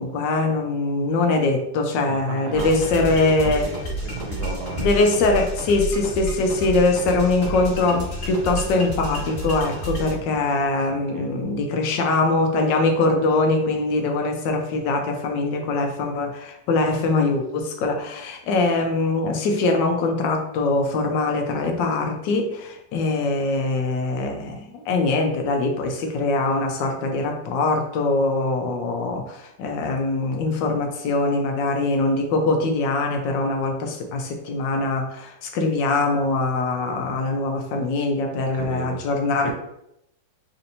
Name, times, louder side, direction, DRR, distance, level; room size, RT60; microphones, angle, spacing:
voice 1, 0.0-3.7 4.8-39.5, left 3 dB, 80° left, 3 dB, 1.3 m, -22 dB
voice 2, 2.0-4.9 10.1-10.6 11.1-11.3 38.4-39.0 39.4-39.5, right 5 dB, 70° right, 2 dB, 1.1 m, -34 dB
sound 1, 2.5-10.1, equal, 35° left, 1.4 m, -30 dB
4.2 x 2.7 x 2.7 m, 0.81 s
omnidirectional pair, 1.9 m